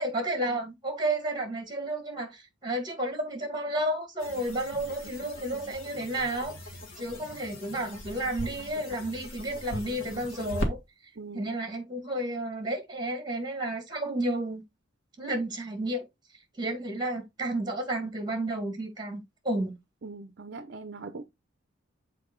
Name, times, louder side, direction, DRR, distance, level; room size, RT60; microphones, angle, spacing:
voice 1, 0.0-6.6 7.0-10.8 11.3-14.6 15.2-16.1 16.6-19.8, right 1 dB, 20° right, 2.1 m, -32 dB
sound 1, 4.2-10.7, equal, 90° left, 1.6 m, -39 dB
voice 2, 11.2-11.6 20.0-21.2, right 3 dB, 55° right, 0.6 m, -41 dB
6.9 x 4.6 x 3.8 m
head